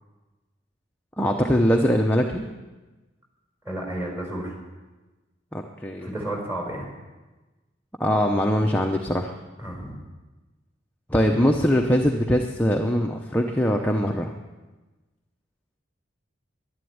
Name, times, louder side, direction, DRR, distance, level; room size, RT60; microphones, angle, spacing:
voice 1, 1.2-2.4 5.5-6.1 8.0-9.3 11.1-14.3, equal, 10° left, 1 dB, 0.7 m, -22 dB
voice 2, 3.6-4.5 6.0-6.9 9.6-10.0, right 1 dB, 10° right, 0 dB, 4.4 m, -32 dB
11.5 x 11.5 x 9.5 m, 1.2 s
head